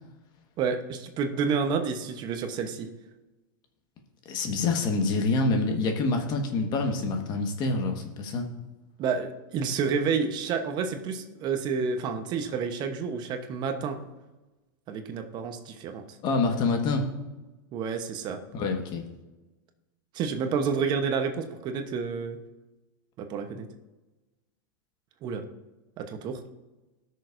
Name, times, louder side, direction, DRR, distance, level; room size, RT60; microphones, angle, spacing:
voice 1, 0.6-2.9 9.0-14.0 14.9-16.0 17.7-18.4 20.1-22.4 23.2-23.7 25.2-25.4 26.0-26.4, right 5 dB, 40° right, 7 dB, 1.0 m, -29 dB
voice 2, 4.2-8.5 16.2-17.1 18.5-19.0, left 3 dB, 40° left, 4 dB, 1.5 m, -26 dB
17.0 x 6.5 x 2.6 m, 1.1 s
hypercardioid pair, 115°, 11 cm